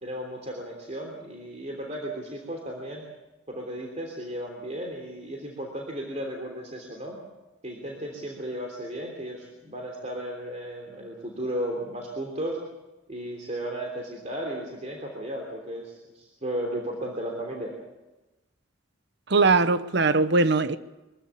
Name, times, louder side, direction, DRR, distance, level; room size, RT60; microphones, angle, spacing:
voice 1, 0.0-3.0 3.5-7.2 7.6-12.6 13.1-17.7, right 1 dB, 35° right, 3.3 m, -34 dB
voice 2, 19.3-20.8, right 3 dB, 60° right, 1.0 m, -20 dB
24.0 x 15.5 x 8.4 m
head